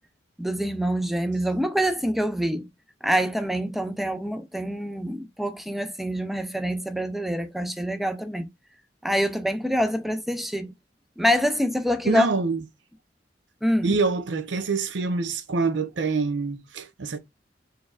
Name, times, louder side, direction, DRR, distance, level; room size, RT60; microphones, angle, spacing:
voice 1, 0.4-2.7 3.0-8.5 9.0-10.7 11.2-12.3 13.6-13.9, equal, ahead, 0.5 m, -26 dB
voice 2, 12.0-12.6 13.8-17.2, right 4 dB, 75° right, 0.6 m, -25 dB
4.3 x 3.4 x 2.4 m
head